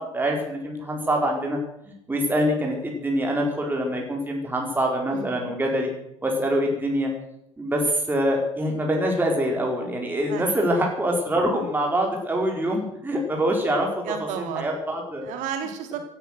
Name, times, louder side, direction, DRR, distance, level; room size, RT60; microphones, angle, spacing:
voice 1, 0.0-1.6 2.1-5.9 6.2-7.1 7.6-13.9 14.4-15.3, equal, 10° right, 0 dB, 4.1 m, -24 dB
voice 2, 5.1-5.5 10.3-10.5 14.0-14.7 15.2-16.0, right 8 dB, 50° right, 6 dB, 3.4 m, -32 dB
16.5 x 13.0 x 6.4 m, 0.79 s
figure-of-eight pair, 70°, 16 cm